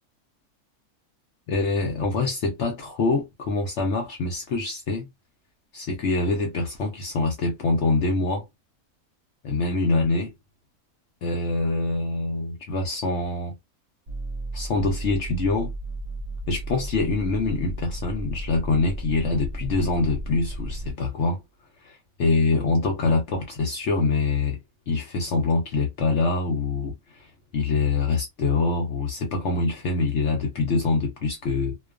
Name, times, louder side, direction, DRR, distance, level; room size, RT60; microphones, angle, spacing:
voice 1, 1.5-5.1 5.7-8.5 9.4-10.3 11.2-13.5 14.5-15.7 16.5-21.4 21.8-24.6 24.9-31.8, left 3 dB, 65° left, 0.7 m, -25 dB
sound 1, 14.1-20.9, right 1 dB, 60° right, 0.9 m, -33 dB
2.4 x 2.3 x 2.3 m
omnidirectional pair, 1.6 m